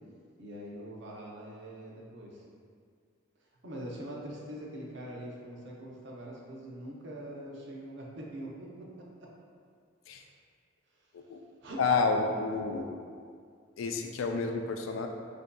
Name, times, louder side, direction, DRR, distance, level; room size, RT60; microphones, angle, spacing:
voice 1, 0.4-2.4 3.6-9.3 10.1-10.3 11.6-11.8, right 1 dB, 65° right, -3 dB, 0.6 m, -43 dB
voice 2, 11.8-12.9 13.8-15.1, left 4 dB, 85° left, 4 dB, 0.3 m, -30 dB
4.8 x 2.6 x 2.2 m, 2.2 s
head